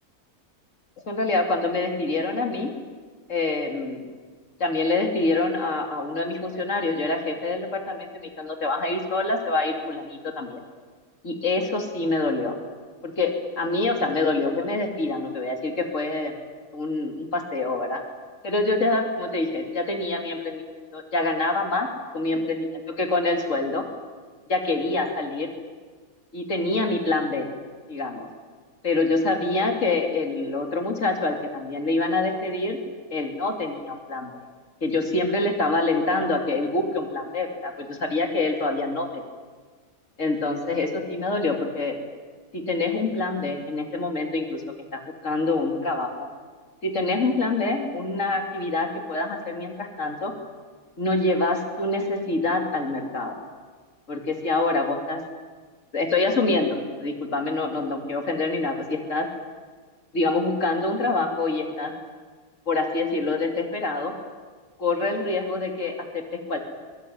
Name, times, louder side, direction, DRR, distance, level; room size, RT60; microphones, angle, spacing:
voice 1, 1.1-2.7 3.3-4.0 4.6-10.6 11.2-12.5 13.0-16.3 16.7-18.0 18.4-20.6 20.9-21.9 22.1-23.8 24.5-25.5 26.3-27.5 27.9-28.3 28.8-32.8 33.1-34.3 34.8-39.2 40.2-42.0 42.5-44.6 44.9-46.3 46.8-50.3 51.0-53.3 54.1-55.2 55.9-59.3 60.1-61.9 62.7-64.1 64.8-66.6, left 2 dB, 60° left, 3 dB, 3.2 m, -26 dB
23.0 x 22.5 x 9.5 m, 1.5 s
omnidirectional pair, 1.5 m